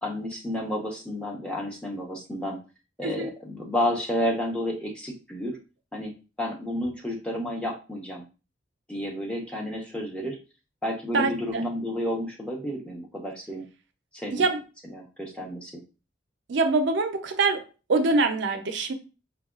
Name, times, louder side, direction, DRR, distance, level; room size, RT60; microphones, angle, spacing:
voice 1, 0.0-2.6 3.0-5.6 5.9-6.1 6.4-8.2 8.9-10.4 10.8-13.6 14.1-14.4 14.9-15.7, left 1 dB, 5° left, 0.7 m, -31 dB
voice 2, 16.5-17.6 17.9-18.9, right 3 dB, 60° right, 0.5 m, -24 dB
4.6 x 2.2 x 2.3 m
head